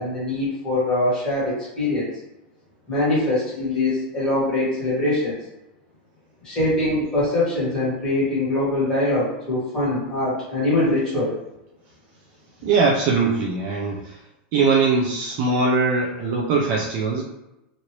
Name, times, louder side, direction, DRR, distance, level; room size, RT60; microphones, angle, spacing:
voice 1, 0.0-2.1 2.9-5.4 6.4-11.4, left 2 dB, 15° left, -9 dB, 1.5 m, -23 dB
voice 2, 12.6-14.1 14.5-17.2, right 4 dB, 35° right, -2 dB, 0.4 m, -21 dB
3.1 x 2.6 x 2.9 m, 0.91 s
supercardioid pair, 175°, 5 cm